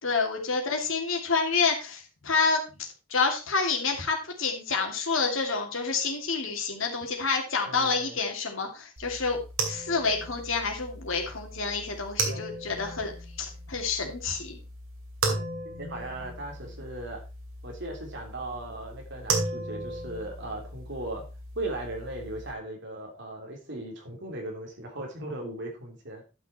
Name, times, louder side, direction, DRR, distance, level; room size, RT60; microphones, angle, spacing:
voice 1, 0.0-9.4 9.7-13.1 13.4-14.6, left 4 dB, 70° left, 3 dB, 2.8 m, -28 dB
voice 2, 7.7-8.2 12.2-12.4 15.2-15.4 15.7-17.2 17.6-21.2 21.5-26.2, right 1 dB, 60° right, 1 dB, 3.3 m, -37 dB
sound 1, 9.0-22.5, right 3 dB, 75° right, 2.6 m, -36 dB
11.5 x 6.1 x 4.4 m, 0.31 s
head